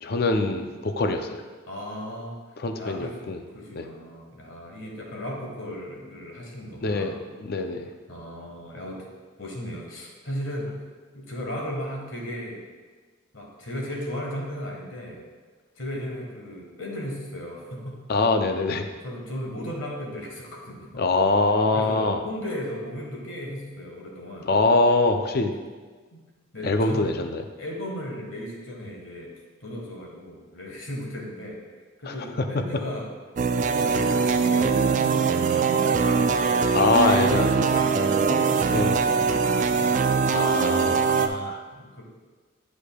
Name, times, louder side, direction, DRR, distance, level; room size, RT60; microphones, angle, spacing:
voice 1, 0.0-1.4 2.6-3.4 3.8-3.9 6.8-7.9 18.1-18.9 21.0-22.2 24.4-25.5 26.6-27.4 32.1-32.2 36.7-37.8 38.7-39.0 40.3-41.6, left 3 dB, 50° left, 7 dB, 0.4 m, -24 dB
voice 2, 1.7-2.4 2.8-7.2 8.1-9.1 9.4-10.7 11.1-12.6 13.3-15.2 15.7-18.0 19.0-21.0 21.7-24.5 26.1-26.2 26.5-27.1 27.6-29.3 29.6-31.6 32.0-33.1 33.8-37.0 37.7-40.5 41.7-42.0, equal, 70° left, -1 dB, 1.4 m, -36 dB
sound 1, 33.4-41.3, right 5 dB, 35° right, 0.3 m, -22 dB
9.9 x 4.9 x 2.3 m, 1.4 s
head